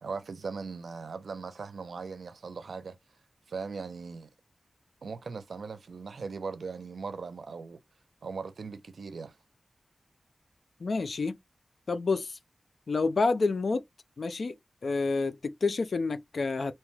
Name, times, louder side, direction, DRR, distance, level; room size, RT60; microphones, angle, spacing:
voice 1, 0.0-3.0 3.5-4.3 5.0-7.8 8.2-9.4, right 4 dB, 90° right, 0.5 m, -39 dB
voice 2, 10.8-11.3 11.9-12.4 12.9-13.8 14.2-14.5 14.8-16.7, left 3 dB, 75° left, 0.5 m, -28 dB
2.8 x 2.2 x 3.2 m
wide cardioid pair, 65°, 0 cm